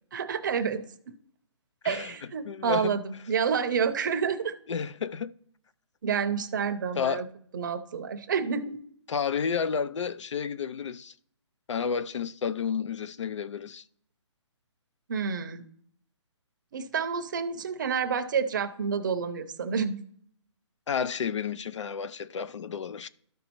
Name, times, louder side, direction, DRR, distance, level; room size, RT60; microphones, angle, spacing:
voice 1, 0.1-1.1 1.8-4.5 6.0-7.3 7.5-8.8 15.1-15.6 16.7-20.0, right 6 dB, 40° right, 0.6 m, -29 dB
voice 2, 1.8-2.1 2.5-3.0 4.7-5.3 7.0-7.3 9.1-11.1 11.7-13.8 20.9-23.1, left 6 dB, 75° left, 0.5 m, -31 dB
13.0 x 5.2 x 3.0 m
hypercardioid pair, 165°, 16 cm